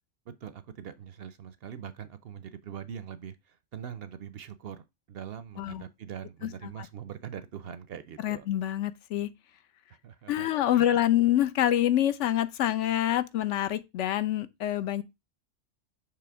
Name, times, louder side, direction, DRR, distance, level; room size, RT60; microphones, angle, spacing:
voice 1, 0.3-8.5 10.0-10.9, right 8 dB, 65° right, 0.7 m, -42 dB
voice 2, 6.4-6.9 8.2-9.3 10.3-15.0, left 12 dB, 75° left, 0.9 m, -26 dB
6.9 x 3.0 x 4.6 m
omnidirectional pair, 1.3 m